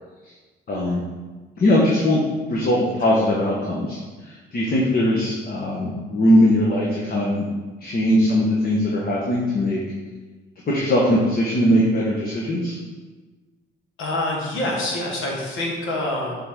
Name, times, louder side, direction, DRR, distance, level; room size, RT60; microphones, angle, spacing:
voice 1, 0.7-1.0 1.6-4.0 4.2-7.4 7.8-9.8 10.7-12.8, left 1 dB, 50° left, -3 dB, 1.2 m, -20 dB
voice 2, 14.0-16.4, left 1 dB, 85° left, -2 dB, 1.6 m, -26 dB
7.7 x 3.9 x 3.8 m, 1.3 s
cardioid pair, 90°, 20 cm